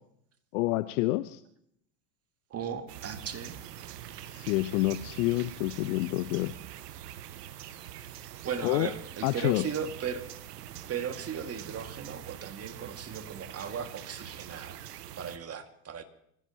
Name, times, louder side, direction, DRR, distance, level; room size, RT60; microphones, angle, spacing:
voice 1, 0.5-1.4 4.3-6.5 8.6-8.9 9.2-9.6, left 18 dB, 65° left, 14 dB, 0.8 m, -28 dB
voice 2, 2.5-3.6 8.0-10.3 10.9-14.8 15.2-16.0, right 7 dB, 30° right, 7 dB, 2.0 m, -37 dB
sound 1, 2.9-15.4, right 11 dB, 75° right, 1.1 m, -44 dB
26.5 x 15.5 x 2.9 m, 0.71 s
hypercardioid pair, 85°, 48 cm